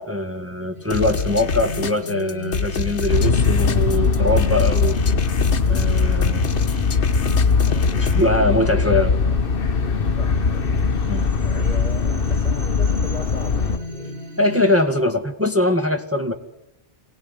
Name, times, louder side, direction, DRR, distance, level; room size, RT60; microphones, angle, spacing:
voice 1, 0.0-5.0 5.7-6.5 7.4-7.5 8.0-9.1 11.1-11.3 14.4-16.3, left 1 dB, 10° right, 4 dB, 1.9 m, -22 dB
sound 1, 0.7-14.9, left 1 dB, 60° right, 7.4 m, -35 dB
sound 2, 0.9-8.3, left 5 dB, 80° left, 1.5 m, -26 dB
sound 3, 3.1-13.8, left 5 dB, 55° left, 1.2 m, -20 dB
voice 2, 7.6-8.3 10.1-11.1 11.4-14.3, right 1 dB, 40° right, 3 dB, 4.6 m, -38 dB
26.5 x 18.5 x 8.2 m, 0.83 s
omnidirectional pair, 1.2 m